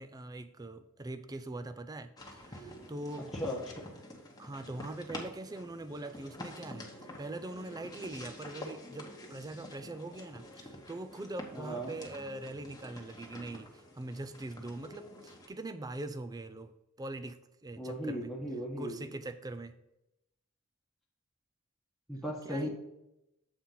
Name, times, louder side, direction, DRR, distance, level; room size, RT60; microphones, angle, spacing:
voice 1, 0.0-3.4 4.4-6.9 7.2-16.7 17.0-18.3 18.8-19.7 22.4-22.7, right 2 dB, 20° right, 11 dB, 0.4 m, -42 dB
sound 1, 2.2-15.5, left 1 dB, 20° left, 1.1 m, -48 dB
voice 2, 11.5-11.9 17.8-19.0 22.1-22.7, equal, ahead, -3 dB, 1.2 m, -36 dB
7.6 x 4.3 x 5.6 m, 0.88 s
head